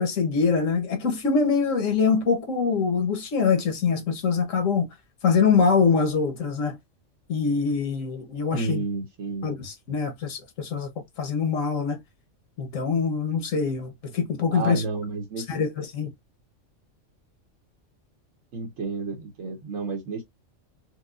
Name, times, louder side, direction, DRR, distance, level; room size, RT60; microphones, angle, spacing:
voice 1, 0.0-4.9 5.2-6.8 7.3-8.8 9.4-10.9 11.2-12.0 12.6-14.8 15.5-16.1, left 5 dB, 85° left, 1.4 m, -24 dB
voice 2, 8.5-9.5 14.5-15.6 18.5-20.2, right 3 dB, 70° right, 1.2 m, -31 dB
4.6 x 2.2 x 2.4 m
omnidirectional pair, 1.3 m